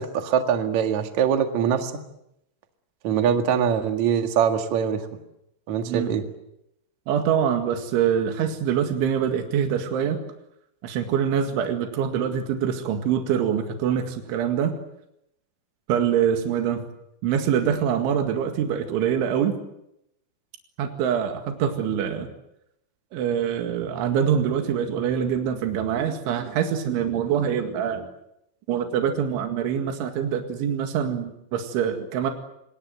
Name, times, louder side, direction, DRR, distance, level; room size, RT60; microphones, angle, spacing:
voice 1, 0.0-1.9 3.0-5.1 5.7-6.2, right 8 dB, 50° right, 5 dB, 2.5 m, -23 dB
voice 2, 7.1-10.2 10.8-14.8 15.9-16.9 17.2-19.6 20.8-22.3 23.1-28.1 28.7-32.3, right 8 dB, 75° right, 5 dB, 4.4 m, -24 dB
26.0 x 24.0 x 7.9 m, 0.81 s
omnidirectional pair, 5.5 m